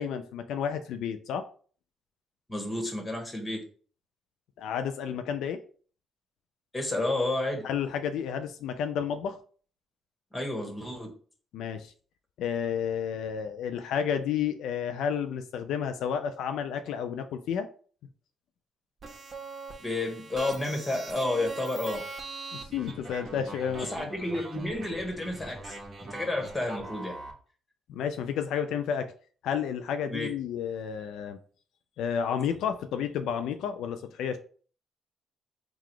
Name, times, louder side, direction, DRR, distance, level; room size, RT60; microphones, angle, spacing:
voice 1, 0.0-1.4 4.6-5.6 7.6-9.4 11.5-11.9 12.4-17.7 22.5-24.1 27.9-29.1 29.4-31.4 32.0-34.4, left 8 dB, 85° left, 8 dB, 0.3 m, -31 dB
voice 2, 2.5-3.6 6.7-7.7 10.3-11.1 19.8-22.0 23.9-27.1 30.1-30.3, left 2 dB, 15° left, 2 dB, 1.4 m, -31 dB
sound 1, 19.0-27.3, right 3 dB, 40° right, 1.2 m, -42 dB
3.8 x 2.3 x 4.6 m, 0.42 s
cardioid pair, 90°, 0 cm